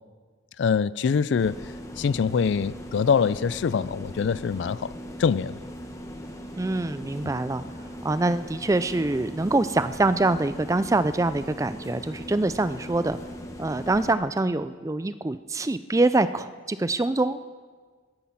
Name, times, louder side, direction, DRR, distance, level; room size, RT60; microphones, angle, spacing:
voice 1, 0.6-4.9 5.2-5.6 7.2-7.3, left 6 dB, 60° left, 18 dB, 0.3 m, -24 dB
sound 1, 1.4-14.1, equal, 15° left, 1.1 m, -39 dB
voice 2, 6.6-7.6 8.0-13.2 13.6-17.5, right 2 dB, 15° right, 13 dB, 0.3 m, -25 dB
13.5 x 12.5 x 5.6 m, 1.5 s
head